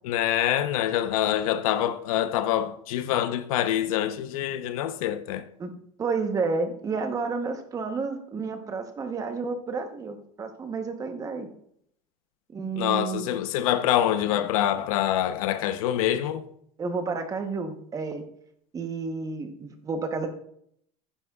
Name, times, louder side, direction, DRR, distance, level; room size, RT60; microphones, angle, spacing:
voice 1, 0.0-5.4 12.8-16.4, left 11 dB, 90° left, 0.9 m, -25 dB
voice 2, 6.0-11.5 12.5-13.3 16.8-18.2 18.7-20.3, right 4 dB, 20° right, 1.0 m, -30 dB
16.0 x 9.9 x 2.4 m
cardioid pair, 160°, 18 cm